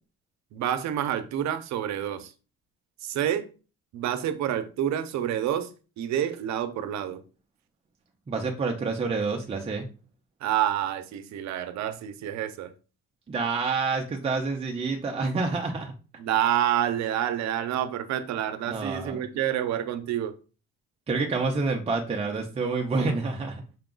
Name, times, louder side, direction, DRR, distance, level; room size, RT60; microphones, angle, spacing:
voice 1, 0.5-2.3 3.0-3.5 3.9-5.7 6.0-7.2 10.4-12.7 16.2-20.4, right 10 dB, 60° right, 0.7 m, -28 dB
voice 2, 8.3-9.9 13.3-15.9 18.7-19.2 21.1-23.6, right 4 dB, 20° right, 0.5 m, -28 dB
5.8 x 2.3 x 3.8 m
cardioid pair, 140°, 31 cm